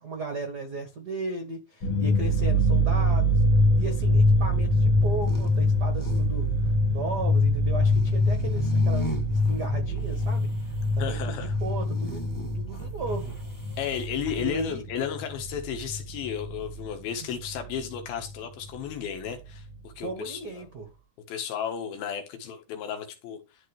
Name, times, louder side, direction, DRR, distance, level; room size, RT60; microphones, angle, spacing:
voice 1, 0.0-3.4 3.7-10.5 11.0-13.4 14.3-14.8 20.0-20.9, right 3 dB, 70° right, 0.9 m, -36 dB
sound 1, 1.8-16.9 17.2-18.3 18.6-18.7 19.1-19.7, left 1 dB, 55° left, 1.4 m, -25 dB
sound 2, 3.9-14.1, equal, 15° left, 0.6 m, -40 dB
voice 2, 11.0-11.5 13.8-20.7 21.3-23.4, left 8 dB, 85° left, 3.4 m, -33 dB
12.0 x 4.5 x 3.3 m
omnidirectional pair, 4.2 m